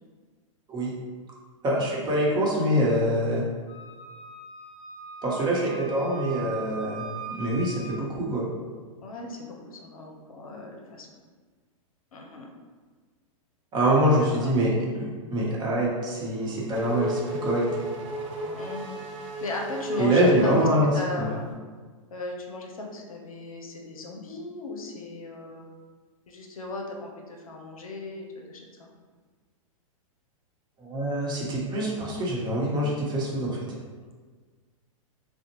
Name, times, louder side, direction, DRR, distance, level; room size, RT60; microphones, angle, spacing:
voice 1, 1.6-3.4 5.2-8.5 13.7-14.7 15.0-17.6 20.0-20.9 21.2-21.3 30.8-33.6, right 1 dB, 25° right, -4 dB, 0.9 m, -25 dB
Wind instrument woodwind instrument, 3.7-8.0, right 5 dB, 50° left, 1.2 m, -41 dB
voice 2, 9.0-11.1 12.1-12.5 14.1-14.6 18.5-19.0 19.4-20.7 20.9-21.5 22.1-25.6 26.3-28.9, left 2 dB, 80° left, 1 dB, 0.6 m, -37 dB
Race car auto racing / Accelerating revving vroom, 16.2-21.4, right 1 dB, 60° right, 0.6 m, -34 dB
3.9 x 2.1 x 2.9 m, 1.5 s
hypercardioid pair, 115°, 18 cm